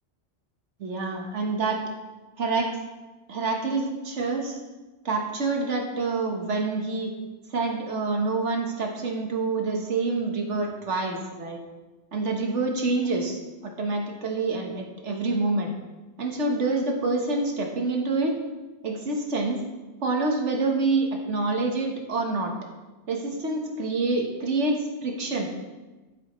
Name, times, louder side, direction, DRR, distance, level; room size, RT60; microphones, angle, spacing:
voice 1, 0.8-1.8 2.4-2.7 3.3-4.6 5.0-7.1 7.5-11.6 12.1-15.7 16.2-18.3 18.8-19.6 20.0-22.5 23.1-25.5, right 3 dB, 80° right, 2 dB, 1.6 m, -27 dB
13.0 x 8.0 x 3.1 m, 1.2 s
omnidirectional pair, 1.2 m